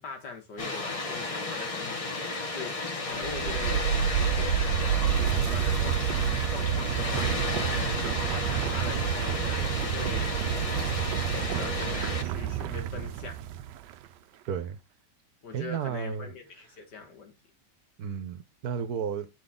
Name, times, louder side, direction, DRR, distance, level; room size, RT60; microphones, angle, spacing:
voice 1, 0.0-10.3 10.7-11.0 11.3-13.4 15.4-17.3, left 4 dB, 80° left, 2.3 m, -42 dB
Water, 0.6-12.2, left 3 dB, 30° left, 0.7 m, -33 dB
sound 1, 3.1-13.9, right 10 dB, 90° right, 1.2 m, -29 dB
voice 2, 14.5-14.8 15.5-16.3 18.0-19.3, right 7 dB, 65° right, 1.3 m, -33 dB
8.3 x 4.0 x 3.6 m
omnidirectional pair, 1.8 m